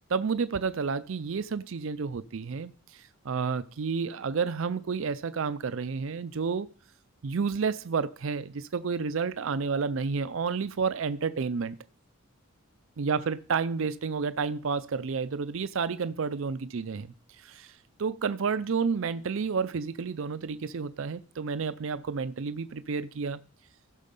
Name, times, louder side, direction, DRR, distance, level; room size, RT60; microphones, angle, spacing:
voice 1, 0.1-6.7 7.2-11.8 13.0-23.4, right 5 dB, 60° right, 0.5 m, -30 dB
15.5 x 6.3 x 5.3 m
head